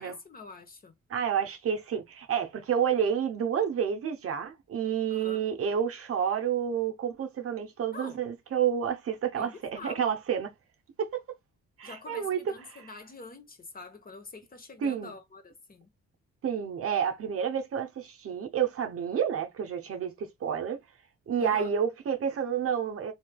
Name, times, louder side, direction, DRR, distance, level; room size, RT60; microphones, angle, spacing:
voice 1, 0.0-1.0 5.1-5.5 7.9-8.2 9.4-10.1 11.8-15.9 21.4-21.7, left 3 dB, 30° left, 0.8 m, -46 dB
voice 2, 1.1-10.5 11.0-11.2 11.8-12.4 12.7-12.8 14.8-15.1 16.4-20.8 21.3-23.1, right 8 dB, 50° right, 0.7 m, -29 dB
3.2 x 2.7 x 2.2 m
cardioid pair, 90°, 30 cm